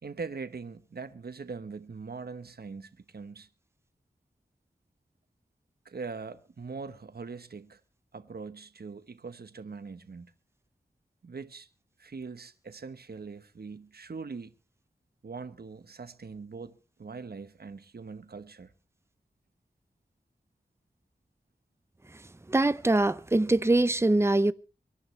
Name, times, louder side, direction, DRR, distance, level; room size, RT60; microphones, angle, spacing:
voice 1, 0.0-3.5 5.8-7.8 8.1-10.3 11.2-11.7 12.0-14.5 15.2-18.7, right 4 dB, 70° right, 1.1 m, -42 dB
voice 2, 22.5-24.5, right 2 dB, 15° right, 0.7 m, -23 dB
24.5 x 11.5 x 3.3 m
wide cardioid pair, 60°, 16 cm